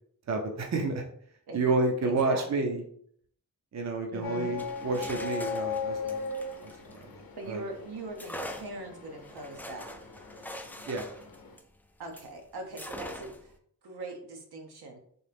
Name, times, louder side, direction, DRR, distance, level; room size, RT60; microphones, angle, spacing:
voice 1, 0.3-1.0 1.5-2.8 3.7-6.3 6.6-6.7 7.0-7.1 7.5-7.6 10.9-11.1, right 3 dB, 45° right, 2 dB, 0.6 m, -29 dB
voice 2, 2.0-2.7 4.1-4.5 7.4-9.9 12.0-13.5 13.8-15.0, right 2 dB, 85° right, 2 dB, 1.0 m, -41 dB
sound 1, 4.2-11.6, left 4 dB, 70° left, 0.7 m, -38 dB
sound 2, 4.5-7.5 8.2-12.3 12.8-13.5, left 1 dB, 5° left, 0.3 m, -44 dB
4.0 x 2.9 x 3.4 m, 0.62 s
wide cardioid pair, 125°, 37 cm